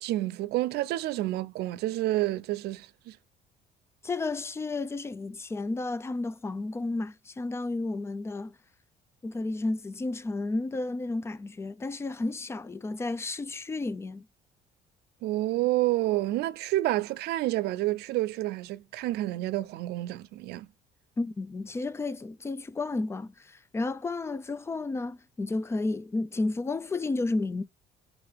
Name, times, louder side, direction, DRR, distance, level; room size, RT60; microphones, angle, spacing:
voice 1, 0.0-3.2 15.2-20.7, right 16 dB, 75° right, 0.4 m, -29 dB
voice 2, 4.0-8.5 9.2-14.3 21.2-27.6, left 3 dB, 15° left, 0.4 m, -32 dB
3.8 x 2.9 x 3.2 m
cardioid pair, 110°, 17 cm